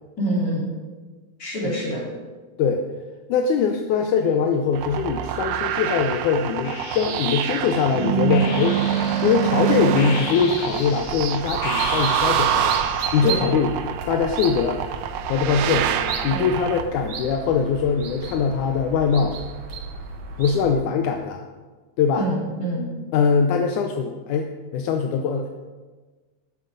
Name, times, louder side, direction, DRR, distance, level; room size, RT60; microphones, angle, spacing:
voice 1, 0.2-0.7 1.4-2.1 13.2-13.4 16.3-16.5 22.2-22.9, right 1 dB, 25° left, -5 dB, 4.3 m, -26 dB
voice 2, 3.3-8.8 9.2-13.7 14.1-14.8 15.3-15.9 16.2-19.4 20.4-21.4 22.0-22.3 23.1-25.5, left 6 dB, 80° left, 4 dB, 2.0 m, -22 dB
sound 1, 4.7-16.8, right 9 dB, 90° right, 2.4 m, -25 dB
sound 2, 5.3-6.0 6.6-13.3, left 5 dB, 60° left, 2.5 m, -36 dB
sound 3, 10.4-20.7, right 4 dB, 65° right, 1.2 m, -35 dB
12.5 x 9.7 x 5.2 m, 1.3 s
omnidirectional pair, 3.8 m